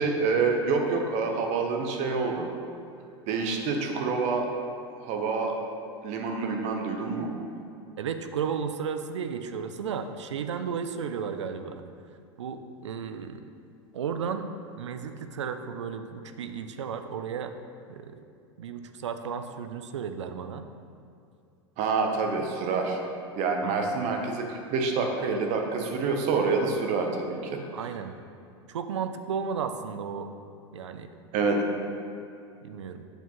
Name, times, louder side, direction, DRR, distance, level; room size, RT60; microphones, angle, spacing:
voice 1, 0.0-2.5 3.3-4.5 5.0-5.5 6.0-7.3 21.8-23.0 23.4-27.6 31.3-31.6, right 4 dB, 50° right, 3 dB, 0.9 m, -27 dB
voice 2, 8.0-11.8 12.4-13.4 13.9-14.5 14.8-17.5 17.9-18.2 18.6-20.7 23.6-23.9 27.7-28.2 28.7-30.3 30.7-31.1 32.6-33.0, right 6 dB, 85° right, 8 dB, 0.4 m, -34 dB
7.7 x 4.5 x 3.0 m, 2.5 s
hypercardioid pair, 90°, 15 cm